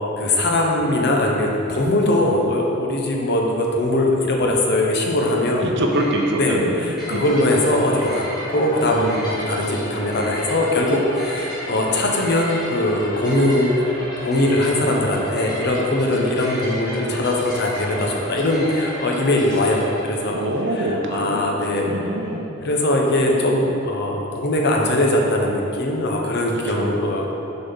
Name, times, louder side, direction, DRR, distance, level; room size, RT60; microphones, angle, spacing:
voice 1, 0.2-5.7 6.4-13.7 14.2-20.4 20.8-20.9 21.1-21.9 22.6-27.3, left 1 dB, 50° left, 0 dB, 0.9 m, -21 dB
sound 1, 5.4-18.9, right 1 dB, ahead, 1.1 m, -36 dB
voice 2, 5.6-7.2 20.3-22.5 26.7-27.0, right 1 dB, 55° right, 1 dB, 0.8 m, -25 dB
sound 2, 7.0-20.5, equal, 20° left, 1.5 m, -35 dB
6.7 x 4.2 x 5.5 m, 2.9 s
head